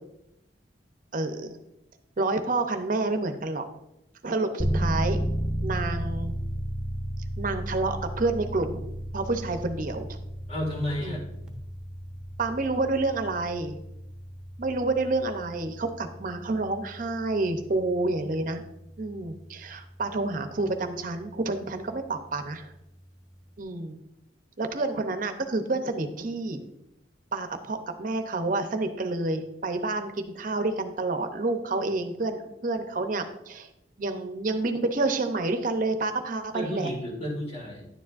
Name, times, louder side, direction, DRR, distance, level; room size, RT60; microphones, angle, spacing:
voice 1, 1.1-1.6 2.2-3.7 4.2-5.2 5.6-6.3 7.4-10.2 11.0-11.2 12.4-13.8 14.6-18.6 19.0-22.7 23.6-24.0 24.6-26.6 27.3-33.7 34.0-36.9, right 2 dB, 50° right, 7 dB, 0.7 m, -29 dB
sound 1, 4.6-21.3, equal, 5° right, 1.0 m, -34 dB
voice 2, 10.5-11.2 36.5-37.9, left 1 dB, 35° left, 0 dB, 1.9 m, -32 dB
10.0 x 7.1 x 2.5 m, 0.85 s
head